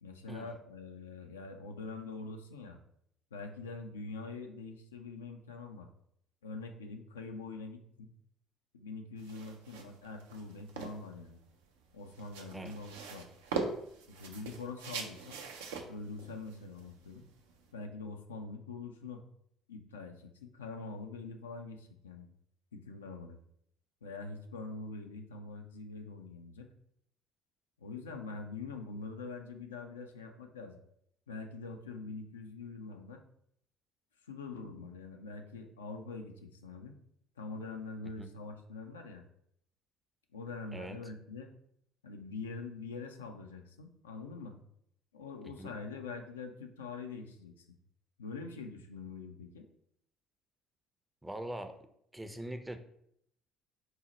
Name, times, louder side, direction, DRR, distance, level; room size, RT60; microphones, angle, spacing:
voice 1, 0.0-2.8 3.3-5.9 6.4-8.1 8.7-11.4 11.9-13.3 14.1-15.4 15.9-17.3 17.7-19.2 19.7-22.3 22.7-23.4 24.0-26.7 27.8-30.8 31.3-33.2 34.3-37.0 37.4-39.2 40.3-41.5 42.0-44.6 45.1-47.7 48.2-49.7, left 3 dB, 85° left, 4 dB, 0.3 m, -44 dB
sound 1, 9.2-17.7, right 4 dB, 75° right, 0.4 m, -42 dB
voice 2, 51.2-51.8 52.1-52.8, right 1 dB, 10° right, 8 dB, 0.4 m, -42 dB
3.9 x 2.0 x 4.0 m, 0.72 s
hypercardioid pair, 55°, 0 cm